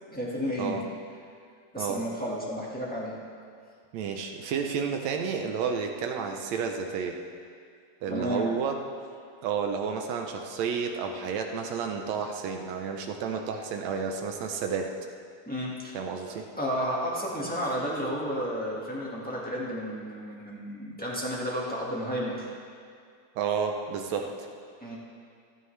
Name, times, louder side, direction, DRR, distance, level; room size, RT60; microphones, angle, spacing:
voice 1, 0.1-0.8 1.7-3.2 8.1-8.6 15.4-16.0 16.3-22.5 24.1-24.2 24.8-25.0, equal, 10° left, -6 dB, 0.4 m, -32 dB
voice 2, 3.9-7.2 8.0-8.8 9.4-14.9 15.9-16.5 23.4-24.5, right 6 dB, 75° right, 4 dB, 1.7 m, -31 dB
16.5 x 13.5 x 3.3 m, 2.2 s
omnidirectional pair, 3.9 m